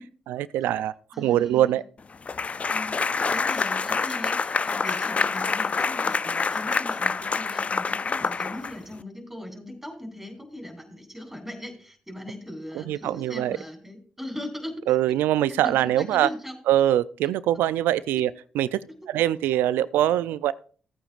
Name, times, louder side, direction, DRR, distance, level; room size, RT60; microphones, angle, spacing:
voice 1, 0.3-1.8 12.7-13.6 14.9-16.3 16.7-18.8 19.1-20.5, right 12 dB, 85° right, 0.4 m, -23 dB
voice 2, 1.1-1.8 2.7-3.0 3.3-14.8 15.5-16.6 18.2-18.3, left 1 dB, 10° right, 4.4 m, -39 dB
sound 1, 2.3-9.0, left 4 dB, 40° left, 0.4 m, -26 dB
16.5 x 8.9 x 2.5 m
supercardioid pair, 50°, 3 cm